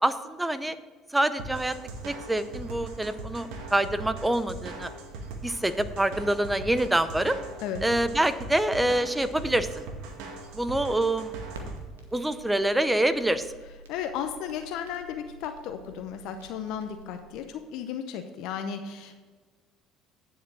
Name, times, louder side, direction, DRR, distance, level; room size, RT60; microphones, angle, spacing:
voice 1, 0.0-0.8 1.1-1.7 2.0-4.9 5.4-7.4 7.8-9.8 10.5-11.3 12.1-13.5, right 1 dB, 10° right, 12 dB, 0.7 m, -26 dB
sound 1, 1.4-11.8, right 3 dB, 70° right, 1.2 m, -40 dB
Crackle, 11.5-17.2, right 1 dB, 90° right, 1.1 m, -48 dB
voice 2, 13.9-19.3, left 8 dB, 65° left, 7 dB, 0.7 m, -35 dB
9.7 x 5.1 x 6.1 m, 1.4 s
hypercardioid pair, 65°, 0 cm